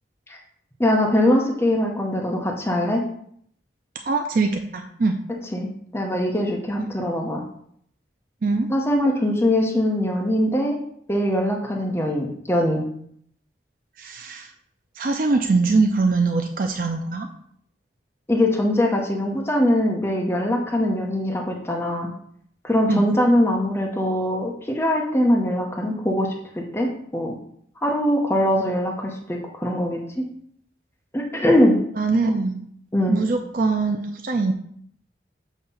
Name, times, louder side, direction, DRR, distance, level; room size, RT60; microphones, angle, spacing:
voice 1, 0.8-3.0 5.5-5.7 5.9-7.4 8.7-10.8 11.1-12.9 18.3-22.1 22.6-27.3 27.8-30.3 31.1-31.8 32.9-33.2, left 1 dB, 15° left, 0 dB, 0.7 m, -22 dB
voice 2, 4.0-5.2 8.4-8.7 14.0-14.5 15.0-17.3 22.9-23.1 32.0-32.7 33.1-34.5, right 3 dB, 50° right, 4 dB, 0.4 m, -22 dB
7.2 x 2.8 x 5.5 m, 0.66 s
head